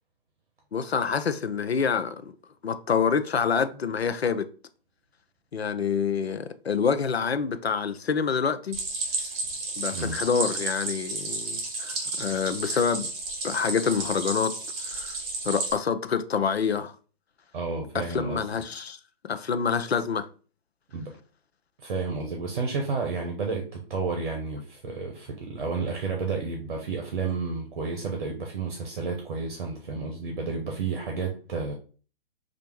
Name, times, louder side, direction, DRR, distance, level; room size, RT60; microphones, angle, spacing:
voice 1, 0.7-2.3 2.6-4.5 5.5-8.8 9.8-13.1 13.4-14.5 14.9-15.2 15.4-16.9 17.9-19.0 19.2-20.3, left 6 dB, 90° left, 0.5 m, -27 dB
Stream, 8.7-15.7, right 3 dB, 25° right, 1.4 m, -32 dB
voice 2, 17.5-18.4 20.9-21.1 21.8-31.7, right 4 dB, 55° right, 0.9 m, -31 dB
3.4 x 2.5 x 4.5 m
figure-of-eight pair, 130°, 30 cm